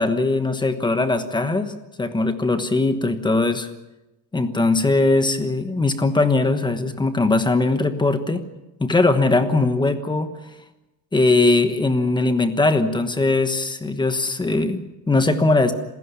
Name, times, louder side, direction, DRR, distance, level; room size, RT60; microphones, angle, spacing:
voice 1, 0.0-3.7 4.3-8.4 8.8-10.3 11.1-15.7, left 2 dB, 10° left, 9 dB, 1.2 m, -20 dB
27.5 x 15.5 x 7.0 m, 1.0 s
cardioid pair, 160°, 50 cm